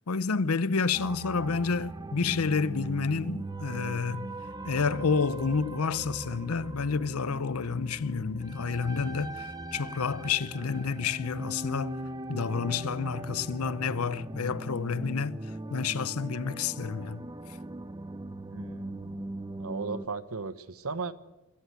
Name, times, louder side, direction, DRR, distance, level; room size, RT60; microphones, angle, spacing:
voice 1, 0.1-4.3 4.6-9.4 9.7-12.0 12.3-15.4 15.7-17.2, left 5 dB, 85° left, 0.7 m, -29 dB
sound 1, 0.9-20.1, right 2 dB, 20° right, 0.8 m, -40 dB
voice 2, 18.5-19.2 19.6-21.1, right 4 dB, 85° right, 1.2 m, -36 dB
26.0 x 14.5 x 8.2 m
head